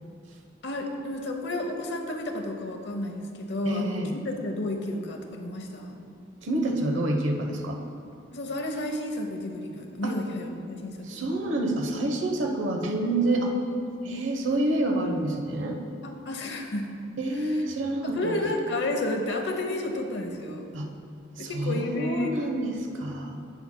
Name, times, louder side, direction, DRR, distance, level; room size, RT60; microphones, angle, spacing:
voice 1, 0.6-6.0 8.3-11.3 16.0-16.9 18.0-20.7 21.4-22.3, left 1 dB, 65° left, 4 dB, 0.8 m, -31 dB
voice 2, 3.6-4.1 6.4-7.8 10.0-10.1 11.0-13.5 14.0-15.8 17.2-18.4 20.7-20.9 21.4-23.4, right 1 dB, 80° right, 2 dB, 1.0 m, -28 dB
16.0 x 5.9 x 2.2 m, 2.4 s
head